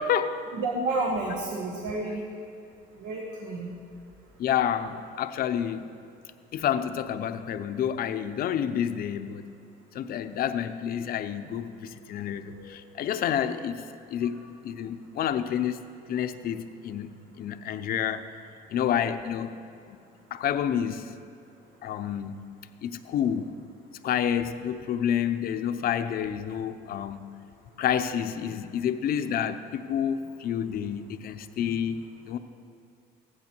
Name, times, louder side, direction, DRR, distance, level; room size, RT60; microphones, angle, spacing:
voice 1, 0.0-0.4 4.4-5.9 6.5-9.5 9.9-13.8 14.1-17.1 17.4-18.3 18.7-19.6 20.3-21.1 21.8-22.4 22.8-23.5 24.0-27.2 27.8-32.4, left 9 dB, 60° left, 10 dB, 0.7 m, -29 dB
voice 2, 0.5-2.2 3.0-3.7 12.5-12.7 13.3-13.4, right 2 dB, 90° right, 0 dB, 1.5 m, -30 dB
16.0 x 11.0 x 4.5 m, 2.4 s
cardioid pair, 110°, 17 cm